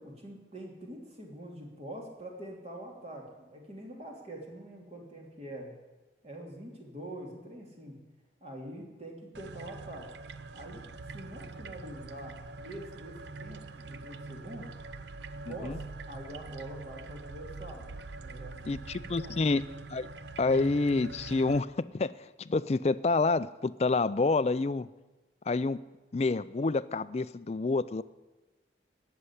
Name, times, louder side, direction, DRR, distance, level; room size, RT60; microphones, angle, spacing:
voice 1, 0.0-5.7 6.2-8.0 8.4-10.1 10.5-10.8 11.1-14.7 15.3-15.8 16.1-17.9 18.1-19.4, right 1 dB, 35° right, 0 dB, 3.1 m, -45 dB
sound 1, 9.4-21.6, right 3 dB, 70° right, 0.6 m, -44 dB
voice 2, 15.5-15.8 18.6-19.6 19.9-20.1 20.4-22.1 22.4-24.9 25.5-25.8 26.1-28.0, left 3 dB, 35° left, 15 dB, 0.4 m, -28 dB
17.5 x 6.8 x 9.9 m, 1.2 s
head